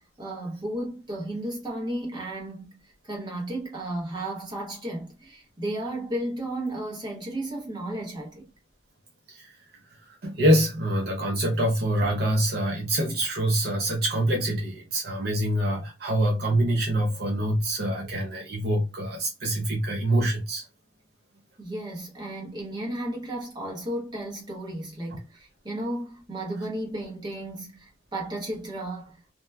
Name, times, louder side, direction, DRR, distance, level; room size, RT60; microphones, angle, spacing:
voice 1, 0.0-8.5 21.6-29.3, right 1 dB, 25° right, 0.8 m, -34 dB
voice 2, 10.2-20.6 25.1-25.2, right 1 dB, 55° right, 0.6 m, -25 dB
2.9 x 2.1 x 2.2 m
head